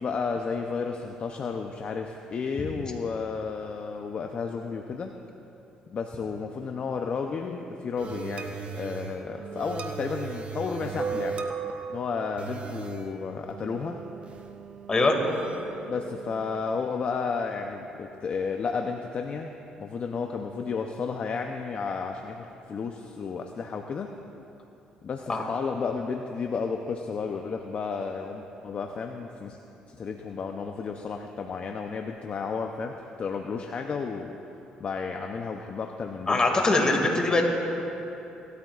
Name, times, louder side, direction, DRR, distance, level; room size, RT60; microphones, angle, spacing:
voice 1, 0.0-5.1 5.9-11.4 11.9-14.0 15.8-19.5 19.8-24.1 25.0-29.6 30.0-34.4 34.8-36.6, left 5 dB, 50° left, 3 dB, 0.6 m, -32 dB
sound 1, 8.0-16.6, right 5 dB, 45° right, 0.9 m, -37 dB
voice 2, 36.3-37.4, left 2 dB, 30° left, 1 dB, 2.2 m, -22 dB
18.5 x 13.0 x 2.4 m, 2.9 s
cardioid pair, 85°, 3 cm